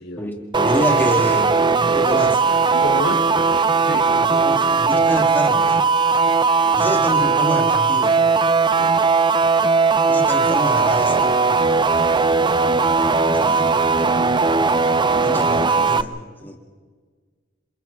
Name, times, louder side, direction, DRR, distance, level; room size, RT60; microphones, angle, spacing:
voice 1, 0.2-2.4 4.2-5.8 6.7-8.2 10.1-11.3 13.3-13.7 15.2-16.1 16.4-16.6, equal, 10° left, 1 dB, 2.4 m, -27 dB
sound 1, 0.5-16.0, right 4 dB, 25° right, 0.5 m, -18 dB
voice 2, 1.9-2.3 2.7-3.3 3.7-4.5 6.6-6.9 8.8-9.0, left 1 dB, 55° left, -3 dB, 3.2 m, -31 dB
28.0 x 27.5 x 3.6 m, 1.5 s
head